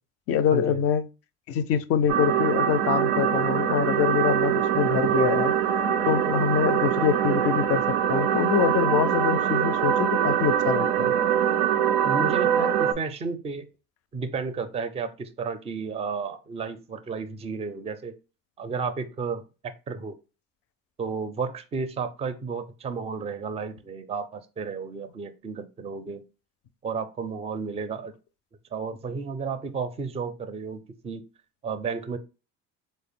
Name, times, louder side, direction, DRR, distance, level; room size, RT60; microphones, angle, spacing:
voice 1, 0.3-1.1 1.5-5.5 6.1-11.1, left 8 dB, 45° left, 0.4 m, -25 dB
sound 1, 2.1-12.9, right 9 dB, 85° right, 0.5 m, -23 dB
voice 2, 12.0-13.7 14.1-18.1 18.6-20.2 21.0-26.2 26.8-28.1 28.7-31.2 31.6-32.2, right 5 dB, 20° right, 0.4 m, -32 dB
4.1 x 2.0 x 3.5 m
cardioid pair, 120°, 33 cm